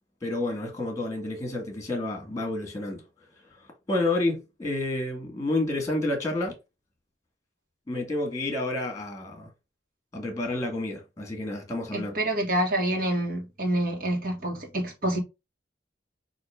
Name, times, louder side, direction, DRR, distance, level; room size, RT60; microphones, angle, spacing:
voice 1, 0.2-3.0 3.9-6.5 7.9-9.5 10.1-12.1, left 2 dB, 20° left, 1.5 m, -29 dB
voice 2, 11.9-15.2, right 1 dB, 55° right, 1.6 m, -27 dB
5.7 x 2.7 x 3.4 m
head